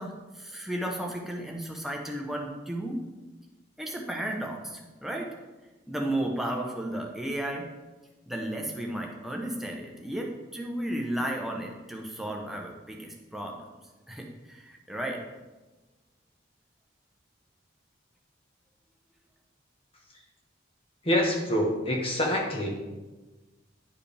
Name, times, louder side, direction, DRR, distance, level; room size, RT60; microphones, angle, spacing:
voice 1, 0.0-3.0 3.8-5.3 5.9-7.7 8.3-13.6 14.1-15.2, right 1 dB, ahead, 0 dB, 0.8 m, -34 dB
voice 2, 21.0-22.8, left 1 dB, 30° left, 0 dB, 1.2 m, -26 dB
10.5 x 4.8 x 3.3 m, 1.2 s
head